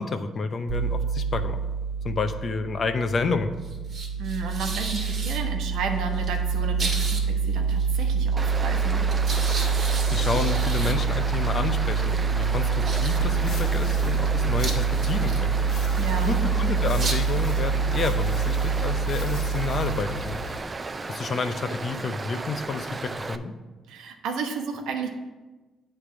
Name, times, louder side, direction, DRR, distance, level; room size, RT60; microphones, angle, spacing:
voice 1, 0.0-1.6 2.0-3.5 10.0-15.5 16.3-20.4 21.1-23.5, left 4 dB, 45° left, 8 dB, 0.6 m, -29 dB
sound 1, 0.7-20.6, right 5 dB, 45° right, 1.4 m, -26 dB
voice 2, 4.2-9.0 15.9-16.5 23.9-25.1, right 4 dB, 85° right, 3 dB, 0.9 m, -32 dB
Stream, 8.4-23.4, right 3 dB, 30° right, 0.4 m, -35 dB
sound 2, 13.2-20.6, left 1 dB, 65° left, 1.1 m, -39 dB
8.4 x 3.3 x 5.9 m, 1.2 s
cardioid pair, 90°, 0 cm